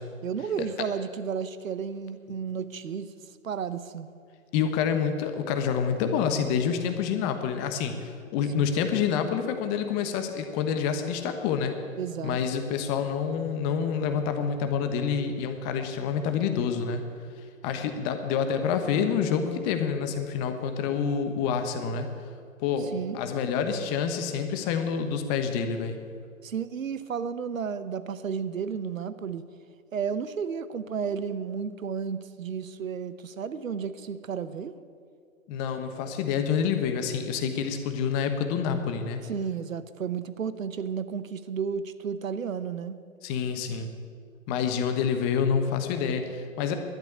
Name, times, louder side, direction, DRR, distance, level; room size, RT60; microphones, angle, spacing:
voice 1, 0.2-3.1 3.4-4.1 8.6-8.7 12.0-12.4 22.9-23.2 26.4-29.4 29.9-34.7 39.2-43.0, right 6 dB, 75° right, 14 dB, 0.9 m, -32 dB
voice 2, 4.5-11.7 12.2-17.1 17.6-22.1 22.6-26.0 35.5-39.2 43.2-43.9 44.5-46.8, left 7 dB, 30° left, 7 dB, 1.3 m, -27 dB
12.0 x 10.0 x 8.4 m, 2.2 s
figure-of-eight pair, 120°, 41 cm